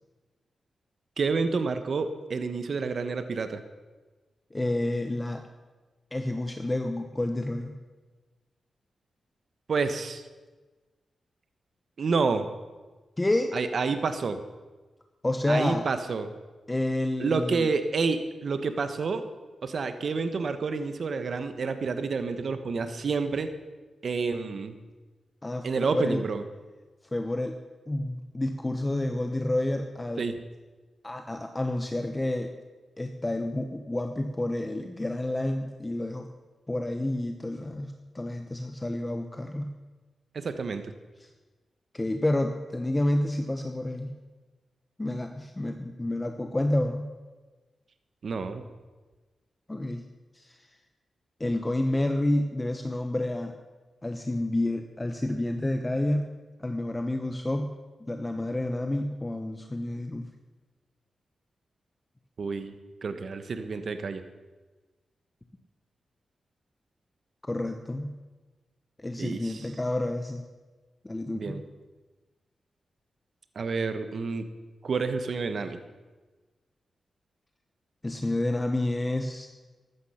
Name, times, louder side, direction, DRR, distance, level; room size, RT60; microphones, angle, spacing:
voice 1, 1.2-3.6 9.7-10.2 12.0-12.5 13.5-14.4 15.5-16.3 17.2-19.3 19.6-23.5 24.0-24.8 25.6-26.4 30.2-30.3 40.3-40.9 48.2-48.6 62.4-62.7 63.0-64.2 69.2-69.7 71.3-71.6 73.5-74.4 74.8-75.8, right 4 dB, 60° right, 9 dB, 1.1 m, -29 dB
voice 2, 4.5-5.4 6.1-7.7 13.2-13.5 15.2-15.8 16.7-17.7 25.4-26.2 27.1-27.6 27.9-30.2 31.0-32.5 33.0-36.3 36.7-39.7 41.2-41.3 41.9-44.2 45.0-47.1 49.7-50.0 50.3-50.6 51.4-53.6 54.0-56.3 56.6-57.7 58.0-60.3 67.4-68.1 69.0-70.4 71.0-71.6 78.0-79.5, left 1 dB, 20° left, 5 dB, 1.1 m, -29 dB
14.5 x 12.5 x 5.7 m, 1.3 s
cardioid pair, 75°, 0 cm